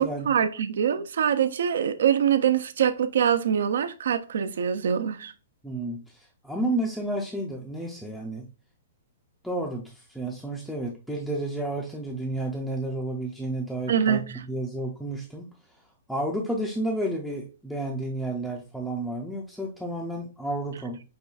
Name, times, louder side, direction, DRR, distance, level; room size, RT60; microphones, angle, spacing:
voice 1, 0.0-5.3 13.9-14.2, right 8 dB, 70° right, 0.4 m, -24 dB
voice 2, 5.6-8.5 9.4-15.5 16.1-21.0, right 1 dB, ahead, 0.4 m, -31 dB
5.4 x 2.2 x 2.3 m
hypercardioid pair, 165°, 0 cm